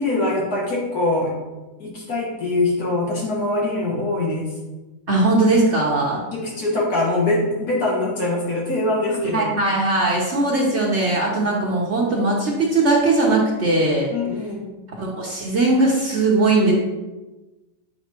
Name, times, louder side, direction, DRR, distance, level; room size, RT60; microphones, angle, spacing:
voice 1, 0.0-1.4 1.8-4.5 6.3-9.5 14.1-14.7, left 2 dB, 60° left, -4 dB, 2.0 m, -23 dB
voice 2, 5.1-6.2 9.2-14.1 14.9-16.7, right 2 dB, 45° right, -3 dB, 1.1 m, -19 dB
8.1 x 5.1 x 2.9 m, 1.1 s
omnidirectional pair, 1.9 m